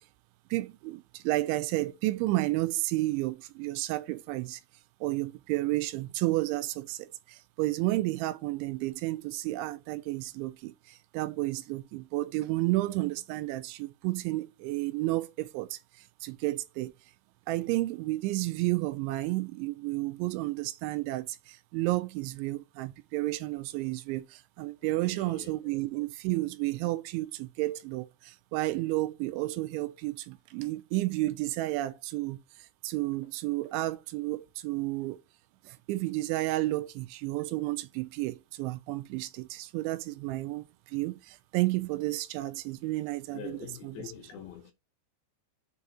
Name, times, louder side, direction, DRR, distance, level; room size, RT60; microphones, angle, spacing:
voice 1, 0.5-4.6 5.0-15.8 16.2-16.9 17.5-32.4 32.8-35.2 35.7-44.1, right 18 dB, 85° right, 3.0 m, -31 dB
voice 2, 25.0-25.5 43.3-44.7, left 9 dB, 75° left, 2.3 m, -44 dB
6.8 x 4.9 x 4.2 m
omnidirectional pair, 5.3 m